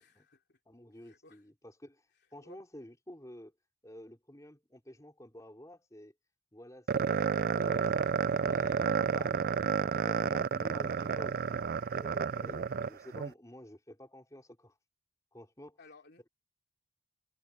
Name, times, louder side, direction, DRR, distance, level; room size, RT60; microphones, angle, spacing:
voice 1, 0.0-0.6 1.0-1.4 2.4-2.6 15.8-16.2, left 2 dB, 55° left, 3.4 m, -58 dB
voice 2, 0.7-2.1 2.3-3.5 3.8-6.1 6.5-11.4 11.9-14.8 15.3-15.8, equal, 15° left, 4.0 m, -51 dB
sound 1, 6.9-13.3, right 6 dB, 45° right, 0.3 m, -31 dB
head